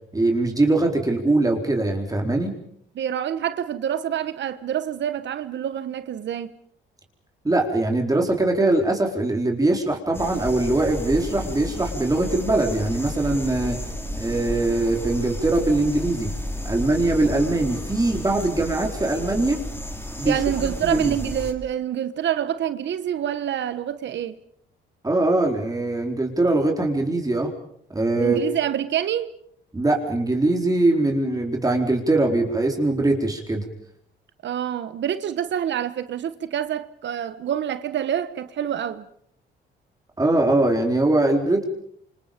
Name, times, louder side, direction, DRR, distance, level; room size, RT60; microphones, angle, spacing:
voice 1, 0.1-2.5 7.4-13.8 14.2-16.3 16.6-19.6 20.2-20.4 20.9-21.1 25.0-27.5 27.9-28.4 29.7-33.6 40.2-41.6, right 2 dB, 20° right, 4.3 m, -22 dB
voice 2, 2.9-6.5 20.2-24.4 28.1-29.4 34.4-39.1, right 10 dB, 65° right, 1.2 m, -27 dB
sound 1, 10.1-21.5, left 1 dB, 10° left, 4.1 m, -32 dB
28.5 x 27.0 x 5.3 m
cardioid pair, 90°, 20 cm